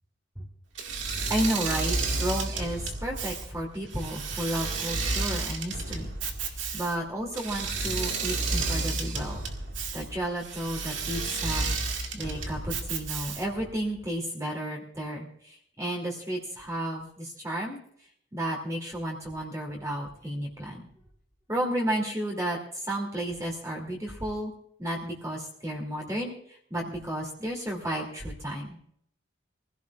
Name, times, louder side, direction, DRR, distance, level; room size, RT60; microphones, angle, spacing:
Engine / Mechanisms, 0.8-13.6, right 3 dB, 80° right, 2.0 m, -31 dB
voice 1, 1.3-6.1 6.4-9.4 9.9-11.7 12.1-17.8 18.3-20.9 21.5-24.5 24.8-28.8, right 1 dB, 15° right, -2 dB, 2.7 m, -32 dB
24.0 x 16.0 x 2.5 m, 0.66 s
head